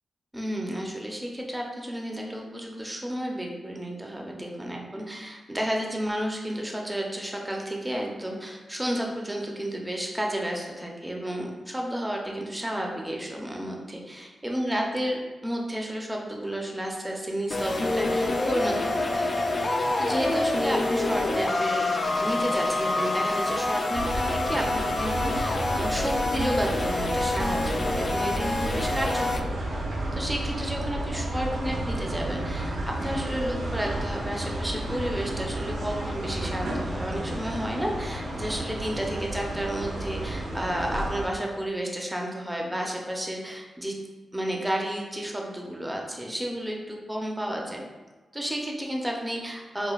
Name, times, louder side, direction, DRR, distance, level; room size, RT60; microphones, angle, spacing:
voice 1, 0.3-21.9 22.2-29.5 30.1-44.0 44.3-47.8 48.3-49.9, equal, 10° right, 0 dB, 0.6 m, -32 dB
sound 1, 17.5-29.4, left 2 dB, 40° left, 0.3 m, -27 dB
sound 2, 23.9-41.3, right 1 dB, 75° right, 0.9 m, -32 dB
5.0 x 2.2 x 2.3 m, 1.2 s
cardioid pair, 80°, 0 cm